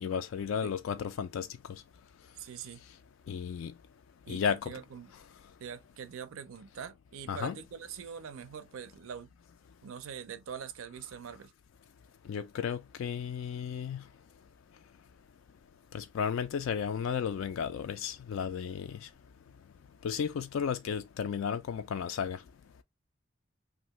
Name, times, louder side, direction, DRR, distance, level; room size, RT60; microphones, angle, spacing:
voice 1, 0.0-1.5 3.3-3.7 4.3-4.7 7.3-7.6 12.3-14.0 15.9-19.0 20.0-22.4, left 7 dB, 70° left, 0.3 m, -33 dB
voice 2, 2.4-2.8 4.3-5.1 5.6-9.3 9.8-11.5, right 7 dB, 75° right, 0.4 m, -43 dB
2.8 x 2.5 x 3.0 m
head